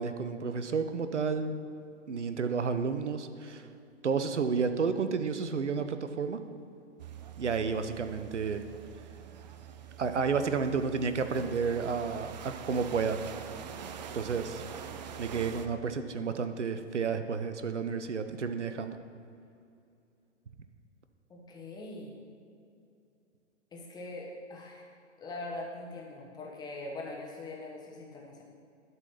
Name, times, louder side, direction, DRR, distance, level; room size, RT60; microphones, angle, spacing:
voice 1, 0.0-1.5 2.1-3.7 4.0-6.4 7.4-8.6 10.0-13.2 14.1-14.6 15.2-19.0, right 5 dB, 75° right, 9 dB, 0.7 m, -31 dB
sound 1, 7.0-15.7, right 8 dB, 40° right, 0.5 m, -45 dB
voice 2, 21.3-22.1 23.7-24.8 25.2-28.4, left 2 dB, 10° left, -2 dB, 1.1 m, -42 dB
12.0 x 4.0 x 5.8 m, 2.5 s
figure-of-eight pair, 115°, 36 cm